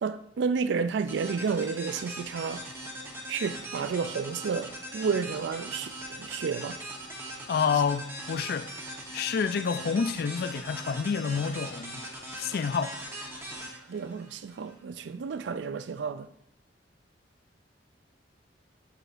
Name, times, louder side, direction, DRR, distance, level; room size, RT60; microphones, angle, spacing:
voice 1, 0.0-2.6 3.3-6.8 13.9-16.3, right 5 dB, 70° right, 0.4 m, -31 dB
sound 1, 1.1-14.7, right 1 dB, 15° right, 1.0 m, -40 dB
voice 2, 7.5-12.0 12.4-13.0, left 6 dB, 55° left, 0.4 m, -29 dB
7.8 x 4.9 x 2.5 m
head